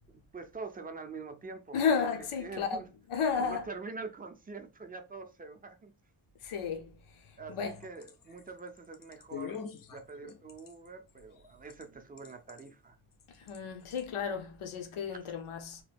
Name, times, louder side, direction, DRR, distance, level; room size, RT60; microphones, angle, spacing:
voice 1, 0.1-2.1 2.4-2.9 3.4-5.9 7.4-13.0 15.2-15.3, right 4 dB, 20° right, 0.4 m, -45 dB
voice 2, 1.7-2.8 3.1-3.6 6.4-7.2 7.5-7.8 13.4-15.8, left 6 dB, 85° left, 0.6 m, -33 dB
sound 1, 7.5-11.8 12.2-12.7 13.2-13.6 13.9-14.0, left 7 dB, 45° left, 0.4 m, -45 dB
2.9 x 2.2 x 3.2 m
wide cardioid pair, 100°, 49 cm